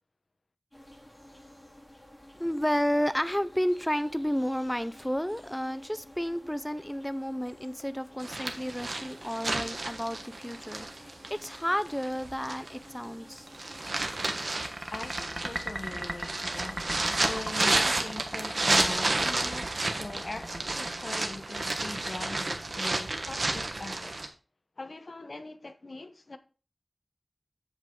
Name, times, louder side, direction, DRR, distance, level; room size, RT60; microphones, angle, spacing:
sound 1, 0.7-14.4, left 1 dB, 25° left, 4.9 m, -52 dB
voice 1, 2.4-13.5, equal, 10° left, 0.6 m, -31 dB
sound 2, 8.2-12.8 13.3-24.3, right 2 dB, 85° right, 1.2 m, -31 dB
sound 3, 13.4-22.0, right 1 dB, 25° right, 1.3 m, -39 dB
voice 2, 14.9-24.2 24.8-26.4, left 2 dB, 80° left, 0.9 m, -41 dB
8.1 x 8.0 x 3.7 m
wide cardioid pair, 55°, 0 cm